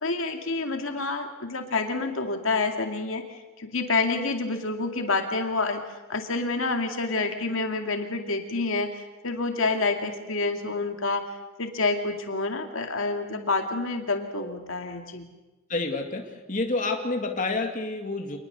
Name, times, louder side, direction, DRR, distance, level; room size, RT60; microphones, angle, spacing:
voice 1, 0.0-5.8 6.1-11.3 11.6-15.3, left 3 dB, 75° left, 4 dB, 2.3 m, -28 dB
voice 2, 15.7-18.4, left 3 dB, 40° left, 3 dB, 2.3 m, -29 dB
27.0 x 20.5 x 6.9 m, 1.1 s
head